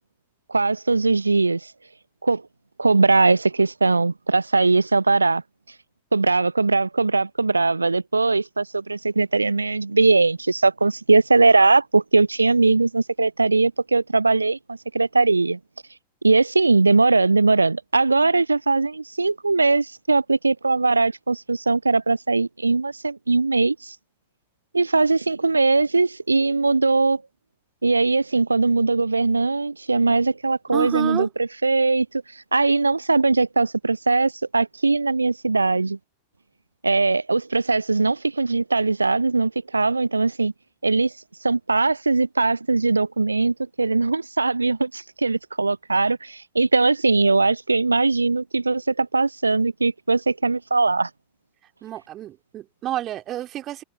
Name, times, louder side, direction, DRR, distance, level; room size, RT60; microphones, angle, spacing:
voice 1, 0.5-1.7 2.2-2.4 2.8-5.4 6.1-15.6 16.2-24.0 24.7-27.2 27.8-32.1 32.3-36.0 36.8-40.5 40.8-41.1 41.4-51.1, right 3 dB, 80° right, 0.6 m, -20 dB
voice 2, 30.7-31.3 51.8-53.8, right 13 dB, 30° right, 2.6 m, -29 dB
figure-of-eight pair, 90°, 0 cm